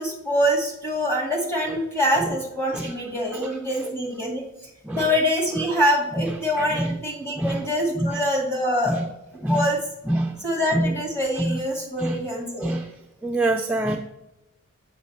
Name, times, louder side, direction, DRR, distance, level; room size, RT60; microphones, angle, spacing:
voice 1, 0.0-4.4 4.9-9.0 9.5-9.8 10.4-12.8, equal, 10° left, -2 dB, 2.1 m, -24 dB
voice 2, 6.2-7.0 7.4-7.6 8.0-8.2 8.9-9.0 9.4-9.7 10.1-10.4 10.7-10.9 11.4-11.6 12.0-12.2 12.6-12.9 13.2-14.0, right 1 dB, 5° right, 1 dB, 0.4 m, -26 dB
7.6 x 6.0 x 4.2 m, 0.91 s
head